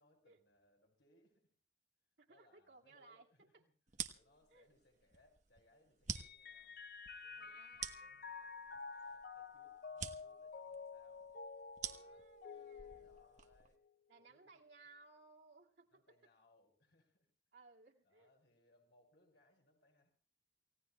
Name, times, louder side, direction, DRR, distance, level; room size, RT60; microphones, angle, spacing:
voice 1, 0.0-1.5 2.3-3.7 4.1-6.8 7.1-7.6 8.0-11.3 11.9-12.3 12.8-13.8 14.2-14.6 15.9-17.3 18.0-20.1, left 1 dB, 75° left, 1 dB, 6.3 m, -73 dB
voice 2, 2.2-3.6 4.5-4.7 7.4-8.3 11.8-13.2 14.1-16.2 17.5-18.3, right 3 dB, 75° right, 0 dB, 2.3 m, -64 dB
sound 1, 3.9-13.8, right 7 dB, 45° right, 1.1 m, -49 dB
Mallet percussion, 6.1-13.9, left 5 dB, 55° left, 0.7 m, -51 dB
29.0 x 17.0 x 2.3 m, 0.38 s
head